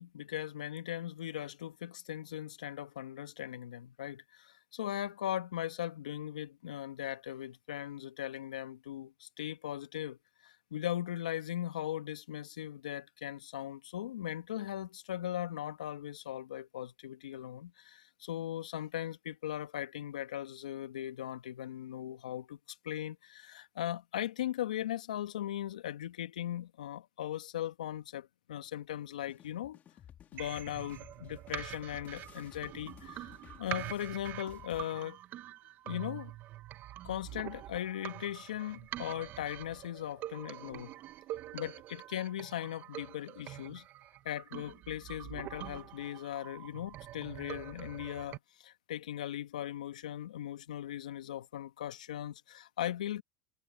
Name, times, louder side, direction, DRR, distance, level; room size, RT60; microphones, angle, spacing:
voice 1, 0.0-10.2 10.4-29.8 30.3-33.3 33.6-35.2 35.9-36.3 37.0-40.9 41.5-43.9 44.3-53.2, left 12 dB, 85° left, 1.9 m, -39 dB
sound 1, 29.3-34.8, left 10 dB, 40° left, 4.8 m, -55 dB
sound 2, 30.4-48.4, right 14 dB, 50° right, 1.4 m, -45 dB
hypercardioid pair, 80°, 4 cm